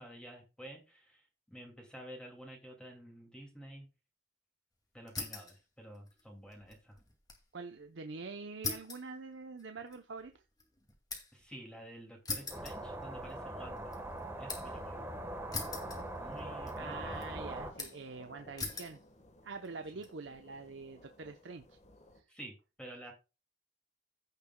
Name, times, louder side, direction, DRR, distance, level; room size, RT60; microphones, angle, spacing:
voice 1, 0.0-3.9 4.9-7.0 11.3-13.9 14.4-15.0 16.2-17.2 22.3-23.1, right 1 dB, 5° left, 0 dB, 2.3 m, -50 dB
sound 1, 5.1-5.6 5.9-7.5 7.8-7.9 8.6-11.5 12.3-13.4 13.8-14.8 15.5-16.4 16.7-17.3 17.8-18.1 18.6-19.0 19.6-20.1, left 3 dB, 20° left, 2.2 m, -42 dB
voice 2, 7.5-10.4 16.7-19.0 19.4-21.8 22.1-22.3, right 4 dB, 85° right, 6 dB, 0.8 m, -45 dB
sound 2, 12.3-22.2, left 2 dB, 40° left, 1.3 m, -57 dB
sound 3, 12.5-17.7, right 1 dB, 15° right, 1.3 m, -42 dB
15.5 x 6.8 x 2.2 m, 0.29 s
head